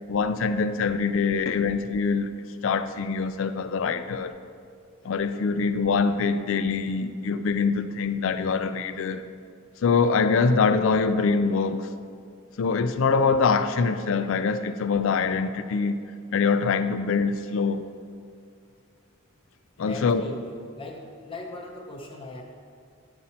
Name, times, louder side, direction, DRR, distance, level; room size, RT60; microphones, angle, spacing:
voice 1, 0.1-2.3 2.6-4.4 5.0-9.3 9.8-11.9 12.6-16.0 16.3-17.9 19.8-20.2, left 5 dB, 65° left, 0.4 m, -24 dB
voice 2, 19.9-22.4, left 2 dB, 25° left, 0.6 m, -39 dB
10.5 x 4.1 x 4.3 m
head